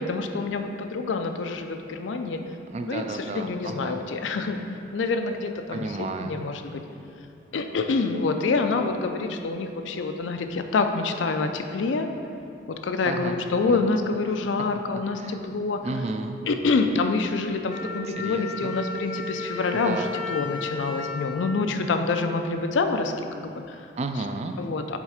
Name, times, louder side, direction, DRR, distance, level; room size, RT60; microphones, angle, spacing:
voice 1, 0.0-2.4 2.9-4.6 4.9-6.8 7.5-12.1 12.8-15.8 16.5-23.9 24.6-25.0, left 3 dB, 85° left, 6 dB, 0.4 m, -27 dB
voice 2, 2.7-4.0 5.7-6.4 13.0-13.4 13.7-13.8 15.2-15.4 15.8-16.4 18.1-18.7 19.7-20.1 24.0-24.6, right 3 dB, 35° right, 6 dB, 0.3 m, -32 dB
Wind instrument woodwind instrument, 17.7-22.5, left 2 dB, 40° left, 0.6 m, -35 dB
7.3 x 3.6 x 4.9 m, 2.6 s
head